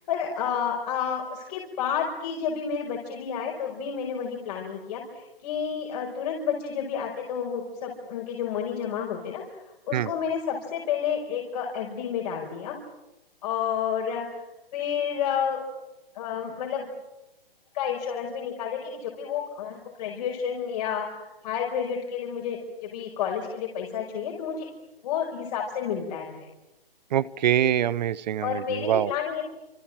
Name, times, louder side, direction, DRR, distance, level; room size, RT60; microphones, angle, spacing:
voice 1, 0.1-9.4 9.9-12.8 13.4-14.4 14.7-15.7 16.1-16.9 17.7-24.7 25.0-26.5 28.4-29.4, left 7 dB, 45° left, 0 dB, 5.5 m, -30 dB
voice 2, 27.1-29.1, right 10 dB, 45° right, 19 dB, 1.1 m, -24 dB
28.5 x 26.5 x 7.6 m, 1.0 s
hypercardioid pair, 140°, 29 cm